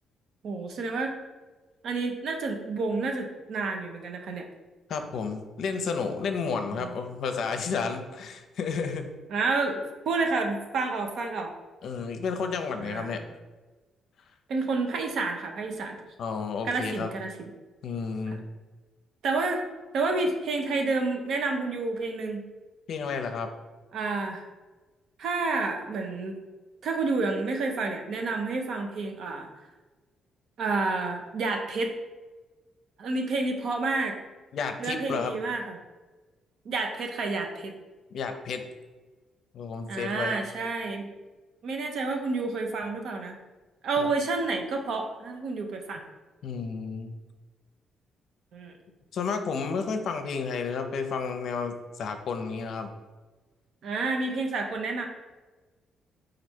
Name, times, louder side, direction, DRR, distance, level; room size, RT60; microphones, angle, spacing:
voice 1, 0.4-1.2 1.8-4.5 6.7-6.9 9.3-9.8 10.1-11.5 12.8-13.2 14.5-16.0 16.6-17.5 19.2-19.6 19.9-22.4 23.9-24.4 25.2-26.4 26.8-29.5 30.6-31.9 33.0-34.1 34.8-35.8 36.6-37.7 39.9-41.1 41.6-43.4 43.8-46.0 48.5-48.7 53.8-55.1, right 3 dB, 70° right, 3 dB, 0.7 m, -29 dB
voice 2, 4.9-9.0 11.8-13.2 16.2-17.1 17.8-18.5 22.9-23.5 34.5-35.3 38.1-38.6 39.5-40.4 44.0-44.1 46.4-47.2 49.1-52.9, left 5 dB, 65° left, 6 dB, 0.5 m, -31 dB
4.4 x 2.5 x 4.3 m, 1.3 s
cardioid pair, 90°, 0 cm